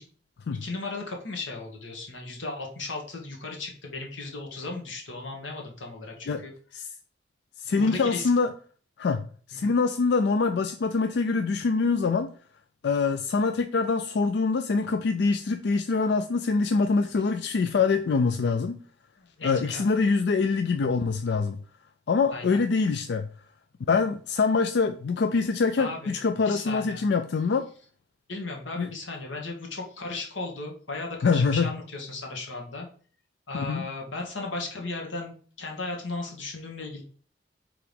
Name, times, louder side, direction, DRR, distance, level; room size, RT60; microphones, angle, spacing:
voice 1, 0.6-6.5 7.8-8.3 9.6-9.7 19.2-19.9 22.3-22.6 25.8-26.1 26.5-27.0 28.3-32.9 33.5-37.0, left 3 dB, 90° left, 1 dB, 1.8 m, -36 dB
voice 2, 7.6-8.5 9.0-12.3 12.8-18.8 19.4-21.6 22.1-23.3 23.9-27.7 28.8-28.9 31.2-31.7 33.5-33.9, left 4 dB, 60° left, 8 dB, 0.4 m, -24 dB
4.8 x 3.7 x 5.2 m, 0.44 s
head